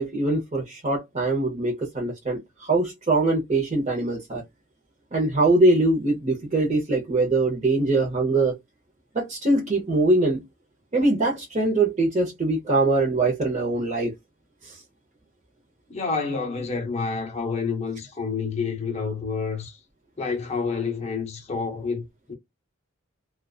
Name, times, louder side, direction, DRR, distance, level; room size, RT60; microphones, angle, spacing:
voice 1, 0.0-4.4 5.1-8.6 9.1-10.4 10.9-14.1 14.6-14.8, right 2 dB, 35° right, 0.7 m, -22 dB
voice 2, 15.9-19.8 20.2-22.3, left 5 dB, 30° left, 0.6 m, -29 dB
2.4 x 2.3 x 2.3 m
head